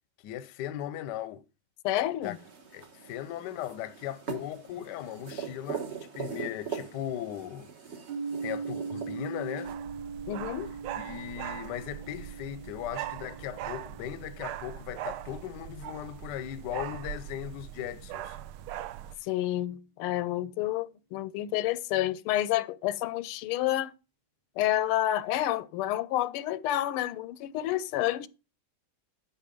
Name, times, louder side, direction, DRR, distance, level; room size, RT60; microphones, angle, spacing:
voice 1, 0.2-1.4 2.2-2.3 2.7-7.7 8.4-9.7 11.0-18.4, left 11 dB, 70° left, 1.1 m, -38 dB
voice 2, 1.8-2.4 10.3-10.7 19.2-23.9 24.6-28.3, left 13 dB, 85° left, 1.5 m, -29 dB
sound 1, 2.2-9.7, right 6 dB, 40° right, 1.1 m, -41 dB
sound 2, 8.1-15.9, right 5 dB, 60° right, 1.8 m, -41 dB
sound 3, 9.6-19.1, right 12 dB, 80° right, 1.4 m, -41 dB
10.0 x 4.3 x 5.2 m
omnidirectional pair, 2.3 m